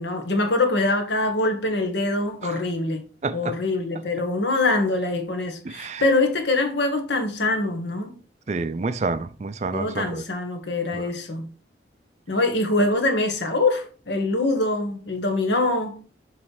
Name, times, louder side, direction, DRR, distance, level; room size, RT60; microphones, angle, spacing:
voice 1, 0.0-3.1 3.3-8.2 9.7-11.5 12.3-16.0, left 2 dB, 70° left, 1.4 m, -24 dB
voice 2, 3.2-3.5 5.7-6.0 8.5-10.2 10.9-11.0, right 3 dB, 40° right, 0.4 m, -28 dB
7.3 x 3.2 x 4.7 m
head